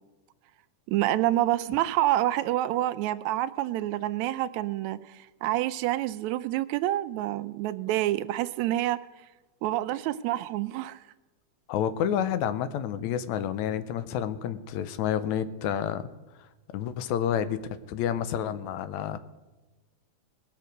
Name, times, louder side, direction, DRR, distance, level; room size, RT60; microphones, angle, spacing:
voice 1, 0.9-9.0 9.6-11.0, right 14 dB, 80° right, 12 dB, 1.9 m, -27 dB
voice 2, 11.7-16.1 16.7-17.6 17.9-19.2, left 9 dB, 80° left, 13 dB, 2.1 m, -29 dB
19.5 x 6.8 x 6.4 m, 1.2 s
omnidirectional pair, 3.3 m